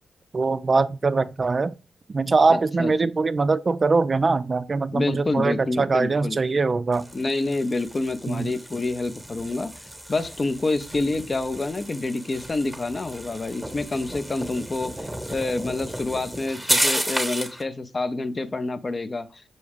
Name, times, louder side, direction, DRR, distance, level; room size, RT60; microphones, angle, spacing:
voice 1, 0.3-1.7 2.1-7.0 8.3-8.5, right 3 dB, 45° right, 0.3 m, -22 dB
voice 2, 2.5-2.9 4.9-6.4 7.1-9.7 10.1-19.3, left 2 dB, 40° left, 0.5 m, -27 dB
sound 1, 6.9-17.6, right 1 dB, 5° right, 1.0 m, -32 dB
5.3 x 2.3 x 3.4 m
supercardioid pair, 45°, 0 cm